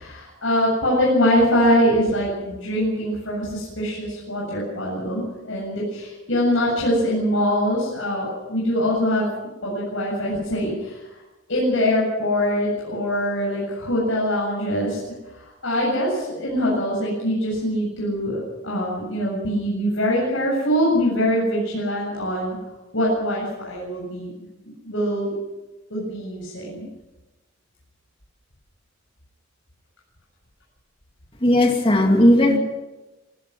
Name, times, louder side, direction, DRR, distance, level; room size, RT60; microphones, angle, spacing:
voice 1, 0.0-9.3 9.6-11.2 11.5-15.0 15.6-22.5 22.9-24.3 24.8-25.3 25.9-26.9 32.5-32.6, equal, 65° left, -4 dB, 7.6 m, -23 dB
voice 2, 31.4-32.6, left 1 dB, 25° left, 3 dB, 2.5 m, -16 dB
26.5 x 15.5 x 6.2 m, 1.1 s
head